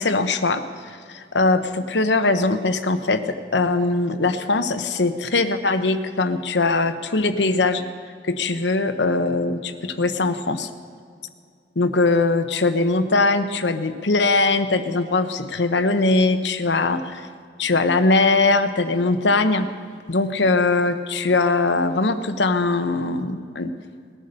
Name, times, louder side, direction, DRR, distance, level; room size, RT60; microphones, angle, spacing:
voice 1, 0.0-3.2 3.5-7.9 8.2-10.7 11.8-17.3 17.6-19.7 20.1-23.7, left 3 dB, 80° left, 9 dB, 1.0 m, -21 dB
19.5 x 11.0 x 6.7 m, 2.2 s
head